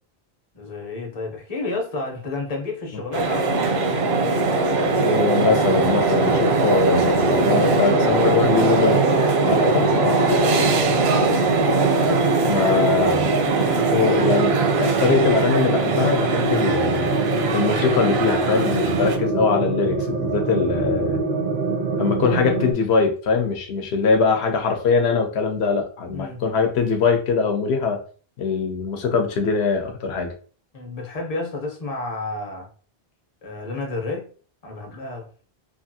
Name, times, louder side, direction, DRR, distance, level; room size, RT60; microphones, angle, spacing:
voice 1, 0.5-3.7 9.5-11.4 26.1-26.4 30.7-32.7 33.4-34.3 34.6-35.3, left 2 dB, 40° left, 0.7 m, -31 dB
sound 1, 3.1-19.2, right 3 dB, 80° right, 0.8 m, -21 dB
sound 2, 3.5-22.7, right 3 dB, 55° right, 0.5 m, -26 dB
voice 2, 4.9-9.0 9.4-9.8 12.5-13.5 13.9-21.2 22.0-28.0 28.4-30.3, left 5 dB, 85° left, 0.9 m, -22 dB
2.8 x 2.5 x 2.6 m
omnidirectional pair, 1.1 m